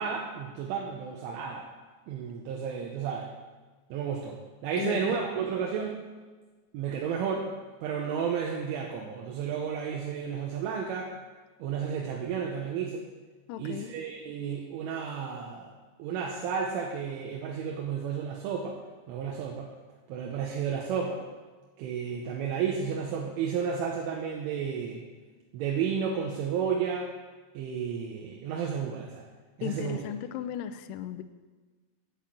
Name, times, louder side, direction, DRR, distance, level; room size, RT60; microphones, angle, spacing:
voice 1, 0.0-1.7 2.1-3.3 3.9-6.0 6.7-7.5 7.8-11.1 11.6-13.0 13.6-15.7 16.0-18.8 19.1-19.7 20.1-21.2 21.8-25.1 25.5-27.1 27.5-29.3 29.6-30.0, right 7 dB, 85° right, 0 dB, 3.5 m, -32 dB
voice 2, 4.8-5.2 13.5-13.9 29.6-31.2, left 11 dB, 85° left, 9 dB, 2.4 m, -36 dB
8.5 x 8.0 x 7.9 m, 1.3 s
omnidirectional pair, 5.5 m